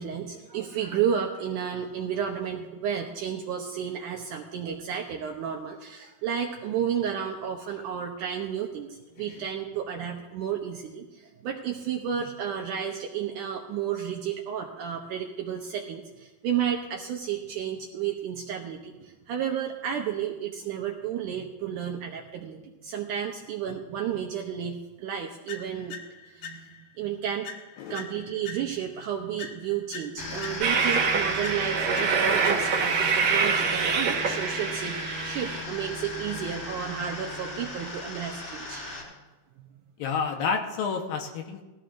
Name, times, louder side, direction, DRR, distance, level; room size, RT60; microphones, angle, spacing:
voice 1, 0.0-26.0 26.3-27.5 27.9-38.8, right 8 dB, 75° right, 2 dB, 2.0 m, -32 dB
sound 1, 25.5-27.0 27.4-29.0 29.4-33.0, left 6 dB, 90° left, 1.5 m, -43 dB
sound 2, 30.2-39.0, left 2 dB, 55° left, 6.0 m, -37 dB
Train, 30.6-35.6, right 5 dB, 60° right, 2.1 m, -25 dB
voice 2, 40.0-41.6, left 5 dB, 70° left, 3 dB, 2.6 m, -30 dB
20.0 x 14.5 x 2.5 m, 1.1 s
omnidirectional pair, 4.5 m